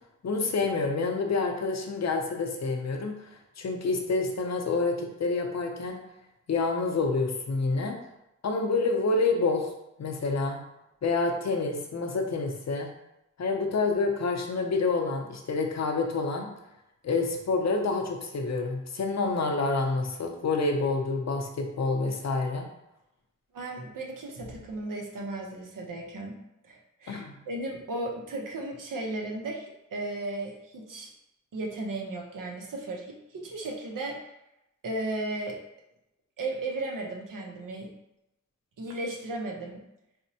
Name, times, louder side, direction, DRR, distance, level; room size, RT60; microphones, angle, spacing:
voice 1, 0.2-3.3 3.6-6.0 6.5-8.0 8.4-9.7 10.0-10.6 11.0-12.9 13.4-16.5 17.0-22.7 27.1-27.3, left 3 dB, 60° left, 3 dB, 0.5 m, -28 dB
voice 2, 23.5-26.4 26.6-31.1 31.5-34.3 34.8-35.6 36.4-37.9 38.8-39.8, right 2 dB, 90° right, 0 dB, 0.7 m, -35 dB
4.2 x 2.0 x 2.7 m, 0.87 s
wide cardioid pair, 90°, 31 cm